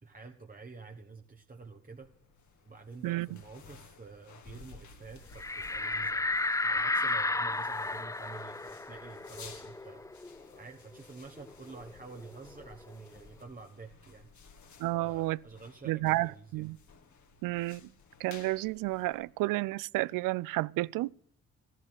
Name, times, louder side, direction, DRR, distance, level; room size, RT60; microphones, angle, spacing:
voice 1, 0.0-2.1 2.7-6.2 6.6-14.3 14.9-16.6, right 4 dB, 25° right, 1.4 m, -49 dB
sound 1, 1.8-19.7, left 5 dB, 55° left, 1.8 m, -56 dB
sound 2, 5.4-10.6 10.9-11.0 11.4-13.0, left 2 dB, 10° left, 0.5 m, -33 dB
voice 2, 14.8-15.4 15.9-16.8 17.4-17.8 18.2-21.1, right 19 dB, 70° right, 0.5 m, -31 dB
13.5 x 11.0 x 6.5 m
hypercardioid pair, 45°, 34 cm